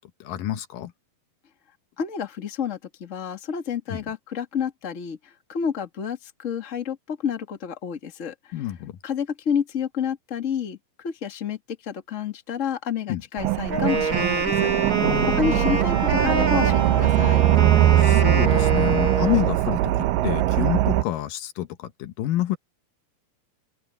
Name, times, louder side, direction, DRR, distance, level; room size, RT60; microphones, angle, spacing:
voice 1, 0.2-0.9 3.9-4.0 8.5-8.9 13.1-13.2 15.0-15.8 18.0-22.6, left 14 dB, 70° left, 2.5 m, -28 dB
voice 2, 2.0-5.2 5.5-8.6 9.0-11.6 11.8-14.7 15.4-17.4, left 7 dB, 30° left, 1.4 m, -29 dB
sound 1, 13.4-21.0, right 14 dB, 75° right, 2.2 m, -21 dB
Wind instrument woodwind instrument, 13.7-19.6, right 3 dB, 25° right, 3.7 m, -26 dB
open air
omnidirectional pair, 4.3 m